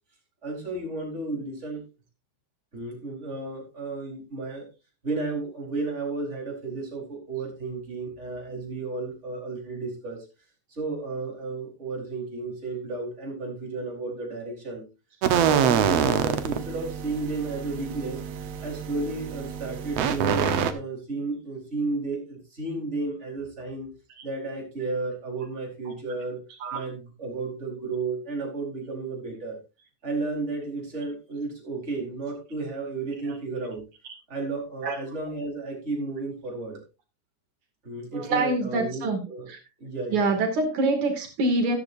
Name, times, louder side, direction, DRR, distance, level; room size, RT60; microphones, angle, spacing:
voice 1, 0.4-1.8 2.7-4.6 5.0-10.2 10.7-14.8 15.4-18.2 18.6-23.9 24.2-26.4 26.7-29.6 30.0-33.8 34.3-36.8 37.8-39.5 39.8-40.3, right 3 dB, 20° right, 0 dB, 4.7 m, -33 dB
sound 1, 15.2-20.7, right 8 dB, 65° right, 2.1 m, -26 dB
voice 2, 38.1-39.2 39.5-39.6 40.1-41.8, right 2 dB, 85° right, 4 dB, 4.0 m, -25 dB
13.5 x 13.0 x 2.7 m, 0.30 s
omnidirectional pair, 3.3 m